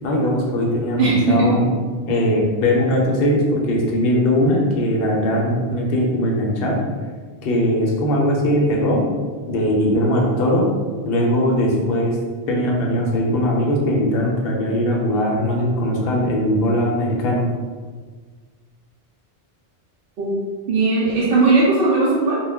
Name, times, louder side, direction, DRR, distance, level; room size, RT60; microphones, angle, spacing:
voice 1, 0.0-1.7 2.1-6.8 7.4-9.0 9.5-10.7 11.0-12.2 12.5-17.4, equal, 65° left, -1 dB, 0.7 m, -20 dB
voice 2, 1.0-1.5 20.2-20.3 20.7-22.4, right 3 dB, 60° right, -8 dB, 0.7 m, -17 dB
2.2 x 2.1 x 3.4 m, 1.5 s
omnidirectional pair, 1.2 m